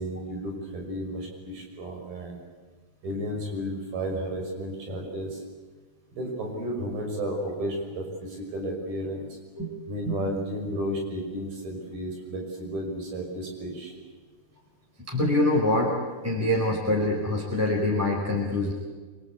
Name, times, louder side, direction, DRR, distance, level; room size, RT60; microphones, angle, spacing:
voice 1, 0.0-2.4 3.0-5.4 6.1-9.4 9.9-13.9, equal, 60° right, 1 dB, 7.9 m, -33 dB
voice 2, 15.1-15.9 16.2-18.7, left 1 dB, 5° right, -2 dB, 4.3 m, -24 dB
26.0 x 26.0 x 8.4 m, 1.4 s
omnidirectional pair, 4.7 m